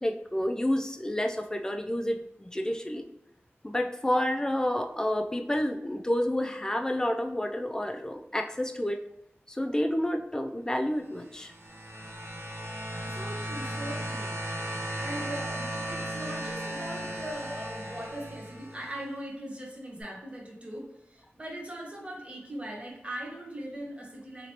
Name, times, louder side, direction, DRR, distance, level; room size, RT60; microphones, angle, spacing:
voice 1, 0.0-3.1 3.6-9.0 9.5-11.5, left 1 dB, 15° left, 4 dB, 0.3 m, -29 dB
sound 1, 11.2-19.0 20.0-20.1, right 1 dB, 60° right, 0.5 m, -36 dB
voice 2, 13.0-14.3 15.0-24.5, right 1 dB, 25° right, -2 dB, 1.0 m, -40 dB
2.9 x 2.9 x 2.8 m, 0.83 s
wide cardioid pair, 65°, 4 cm